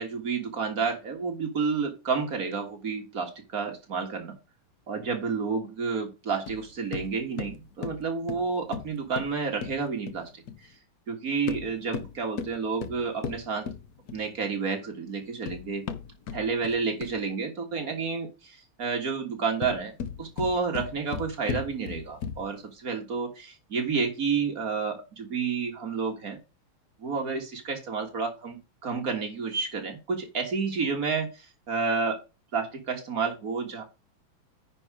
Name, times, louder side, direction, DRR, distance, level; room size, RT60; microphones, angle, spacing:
voice 1, 0.0-4.3 4.9-10.4 11.1-13.7 14.1-15.8 16.3-19.9 20.2-26.4 27.0-32.2 32.5-33.8, right 5 dB, 45° right, 3 dB, 2.0 m, -30 dB
sound 1, 6.5-10.6 11.3-14.4 15.1-17.4 19.4-22.6, left 6 dB, 60° left, 1.1 m, -37 dB
9.8 x 4.6 x 4.8 m, 0.28 s
omnidirectional pair, 2.4 m